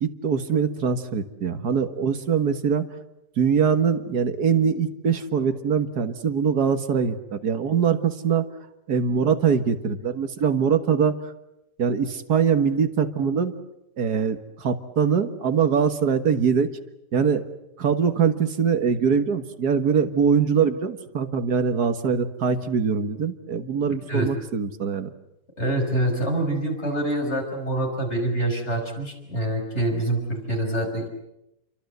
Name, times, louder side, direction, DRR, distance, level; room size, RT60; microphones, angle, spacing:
voice 1, 0.0-2.9 3.4-8.5 8.9-11.2 11.8-13.5 14.0-16.7 17.1-17.4 17.8-25.1, right 6 dB, 85° right, 9 dB, 2.1 m, -23 dB
voice 2, 23.9-24.3 25.6-31.1, right 1 dB, 45° left, 2 dB, 6.5 m, -26 dB
29.0 x 24.0 x 8.1 m, 0.88 s
omnidirectional pair, 1.6 m